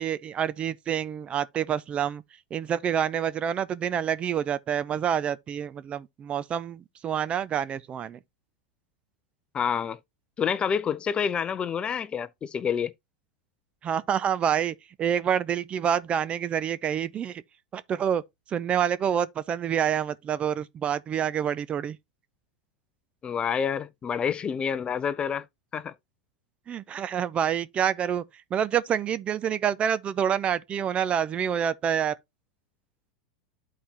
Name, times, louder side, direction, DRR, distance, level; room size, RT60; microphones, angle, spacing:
voice 1, 0.0-2.2 2.5-8.2 13.8-17.4 17.7-18.2 18.5-22.0 26.7-28.2 28.5-32.2, right 8 dB, 30° right, 0.4 m, -27 dB
voice 2, 9.5-10.0 10.4-12.9 23.2-25.5 25.7-25.9, left 7 dB, 25° left, 0.5 m, -28 dB
11.0 x 4.2 x 2.9 m
hypercardioid pair, 100°, 4 cm